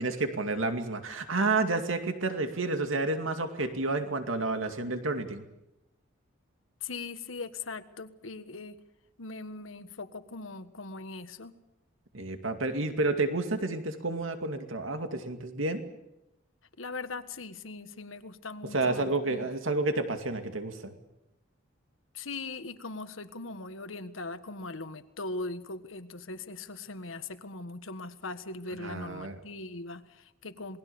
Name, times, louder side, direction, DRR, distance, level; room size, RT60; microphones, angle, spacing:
voice 1, 0.0-5.5 12.1-15.8 18.7-20.9 28.8-29.4, right 2 dB, 85° right, 7 dB, 2.3 m, -30 dB
voice 2, 6.8-8.8 9.2-11.5 16.8-19.5 22.1-30.8, left 3 dB, 85° left, 10 dB, 1.5 m, -40 dB
27.5 x 21.0 x 7.0 m, 0.90 s
head